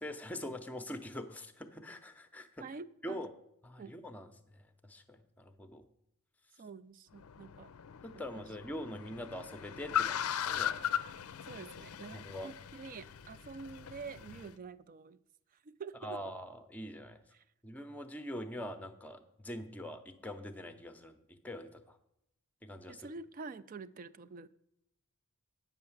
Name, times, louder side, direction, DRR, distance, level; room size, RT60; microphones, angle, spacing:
voice 1, 0.0-2.5 3.0-3.3 3.6-5.8 8.0-10.8 12.2-12.5 16.0-17.2 17.6-21.2 21.4-22.0 22.6-23.1, equal, 5° left, 9 dB, 0.6 m, -44 dB
voice 2, 2.6-3.2 3.8-3.9 6.6-7.7 8.3-8.4 11.4-15.2 15.5-16.2 17.3-17.4 22.9-24.5, right 4 dB, 40° right, 15 dB, 0.3 m, -47 dB
Car, 7.1-14.5, left 9 dB, 85° left, 0.5 m, -39 dB
8.9 x 5.8 x 7.1 m, 0.80 s
head